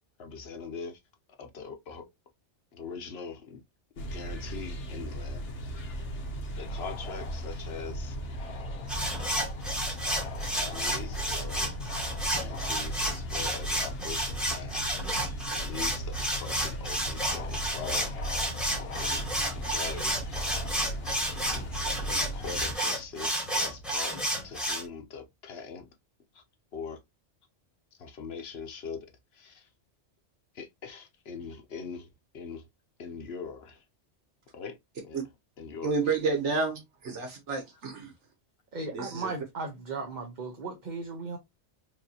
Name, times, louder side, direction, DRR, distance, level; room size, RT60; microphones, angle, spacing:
voice 1, 0.2-1.0 1.4-2.1 2.7-3.6 4.0-5.9 6.6-8.2 10.3-11.8 12.2-14.8 15.1-18.1 18.5-19.2 19.5-20.2 21.3-25.9 26.3-26.4 26.7-27.0 28.0-29.1 29.3-29.7 30.5-32.1 32.3-32.7 33.0-33.9 34.5-34.8 35.0-35.3 35.6-36.2, left 5 dB, 65° left, 1.1 m, -42 dB
sound 1, 4.0-22.7, equal, 85° left, 1.3 m, -37 dB
sound 2, 6.6-15.6 15.8-22.4, left 6 dB, 40° left, 0.6 m, -47 dB
sound 3, 8.9-24.8, right 1 dB, ahead, 1.3 m, -31 dB
voice 2, 35.8-38.1 38.9-39.3, right 4 dB, 85° right, 1.4 m, -30 dB
voice 3, 38.7-41.4, right 3 dB, 45° right, 0.9 m, -36 dB
4.7 x 2.8 x 2.7 m
omnidirectional pair, 1.2 m